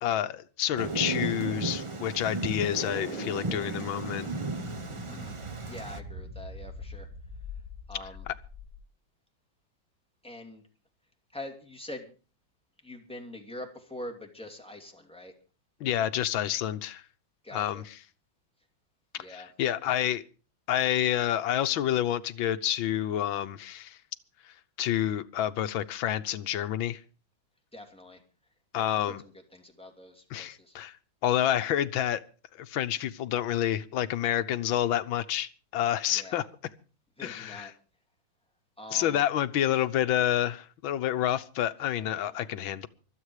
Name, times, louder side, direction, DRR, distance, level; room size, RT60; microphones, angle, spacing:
voice 1, 0.0-4.3 8.3-8.4 15.8-17.0 17.5-18.0 19.3-20.2 20.7-24.0 24.8-27.0 28.7-29.2 30.3-30.9 31.2-32.2 32.6-36.5 37.2-37.7 38.9-42.9, left 11 dB, 80° left, 12 dB, 1.6 m, -28 dB
Thunder, 0.8-6.0, right 3 dB, 35° right, 0.4 m, -35 dB
sound 1, 2.7-8.8, right 1 dB, 20° right, 5.1 m, -40 dB
voice 2, 5.1-5.4 5.7-7.1 7.9-8.2 10.2-10.6 11.3-12.1 12.8-15.3 17.4-17.8 19.2-19.5 27.7-28.2 28.7-30.7 36.1-36.5 37.2-37.7 38.8-39.2 42.3-42.4, left 1 dB, 5° left, 2 dB, 2.7 m, -44 dB
25.0 x 8.3 x 4.8 m, 0.35 s
omnidirectional pair, 2.1 m